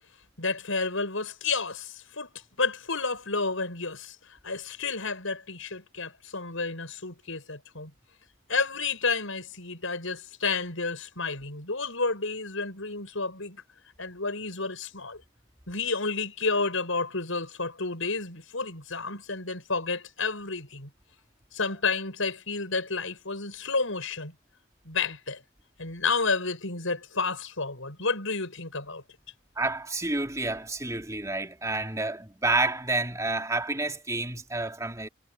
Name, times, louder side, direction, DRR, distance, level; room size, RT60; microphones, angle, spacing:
voice 1, 0.4-2.3 2.6-4.2 4.4-7.9 8.5-13.6 14.0-15.2 15.7-20.9 21.5-24.3 24.8-25.4 25.8-29.0, left 4 dB, 65° left, 7.4 m, -30 dB
voice 2, 29.6-35.1, right 2 dB, 15° right, 2.9 m, -29 dB
head